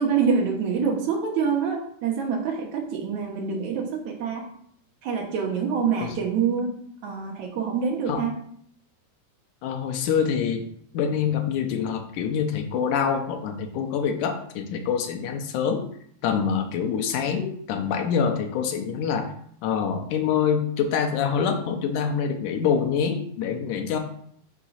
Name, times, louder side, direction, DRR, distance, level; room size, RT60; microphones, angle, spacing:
voice 1, 0.0-4.5 5.0-6.7 7.0-8.4, right 6 dB, 70° right, 0 dB, 2.5 m, -26 dB
voice 2, 9.6-10.6 10.9-15.8 16.2-19.3 19.6-24.0, left 7 dB, 80° left, 4 dB, 2.3 m, -25 dB
6.1 x 3.7 x 5.6 m, 0.64 s
omnidirectional pair, 3.6 m